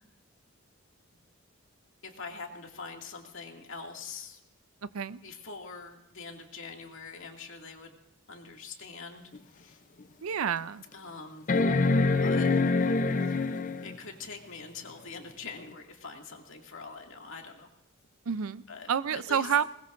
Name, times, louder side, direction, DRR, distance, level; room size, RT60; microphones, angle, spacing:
voice 1, 2.0-4.4 5.2-8.0 8.3-9.8 10.9-11.5 12.2-12.5 13.2-13.6 13.8-17.7 18.7-19.5, left 4 dB, 65° left, 2 dB, 2.3 m, -44 dB
sound 1, 9.3-9.4 10.0-10.1 11.5-14.0 15.7-15.8, left 3 dB, 40° left, 0.6 m, -25 dB
voice 2, 10.2-10.8 18.3-18.6 18.9-19.6, right 7 dB, 75° right, 16 dB, 0.5 m, -28 dB
21.0 x 20.0 x 2.6 m, 0.89 s
head